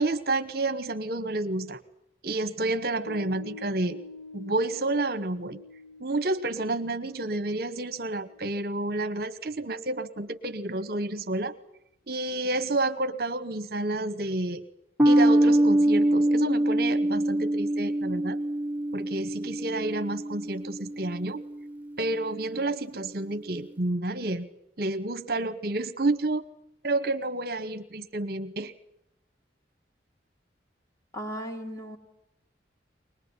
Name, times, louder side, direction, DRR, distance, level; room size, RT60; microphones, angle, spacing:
voice 1, 0.0-1.8 2.2-4.0 4.3-5.6 6.0-11.5 12.1-14.6 15.0-18.4 18.9-21.4 22.0-24.5 24.8-26.4 26.8-28.7, right 2 dB, 55° right, 11 dB, 1.1 m, -30 dB
Piano, 3.1-9.8, left 2 dB, 60° left, 1.6 m, -47 dB
sound 1, 15.0-21.7, right 1 dB, 10° right, 0.9 m, -24 dB
voice 2, 31.1-32.0, equal, 15° left, 2 dB, 3.0 m, -36 dB
23.0 x 20.0 x 9.7 m, 0.84 s
head